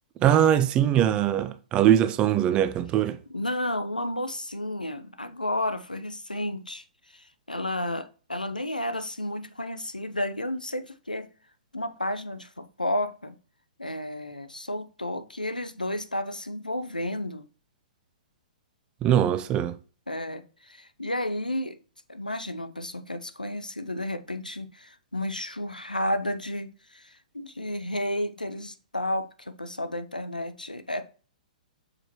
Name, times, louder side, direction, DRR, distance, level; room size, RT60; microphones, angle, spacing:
voice 1, 0.2-3.2 19.0-19.8, right 10 dB, 25° right, 0.4 m, -21 dB
voice 2, 3.3-11.3 11.7-13.4 13.8-17.4 20.1-21.8 22.1-31.0, left 1 dB, 90° left, 0.7 m, -32 dB
6.5 x 5.0 x 2.9 m
figure-of-eight pair, 115°, 4 cm